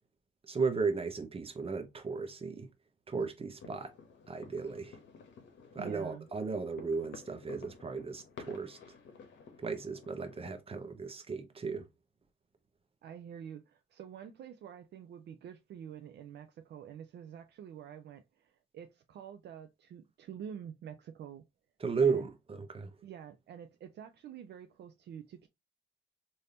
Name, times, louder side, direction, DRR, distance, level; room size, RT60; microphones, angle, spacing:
voice 1, 0.5-2.7 3.1-3.9 4.3-5.0 5.7-8.8 9.6-11.9 21.8-22.9, right 5 dB, 30° right, 0.9 m, -35 dB
sound 1, 3.6-10.5, left 5 dB, 65° left, 0.9 m, -53 dB
voice 2, 5.8-6.3 13.0-21.4 22.0-22.2 23.0-25.5, right 8 dB, 60° right, 0.5 m, -47 dB
3.4 x 2.7 x 2.7 m
cardioid pair, 90°, 20 cm